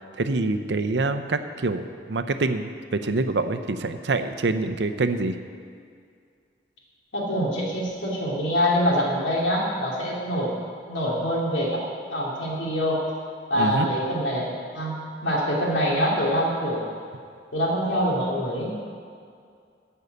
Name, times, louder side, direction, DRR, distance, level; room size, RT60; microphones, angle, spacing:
voice 1, 0.2-1.8 2.1-5.4 13.5-13.9, right 3 dB, 70° right, 9 dB, 0.6 m, -25 dB
voice 2, 7.1-10.5 10.9-11.8 12.1-13.0 13.5-15.0 15.2-16.9 17.5-18.7, equal, 85° left, -4 dB, 2.8 m, -25 dB
13.5 x 5.5 x 8.0 m, 2.2 s
head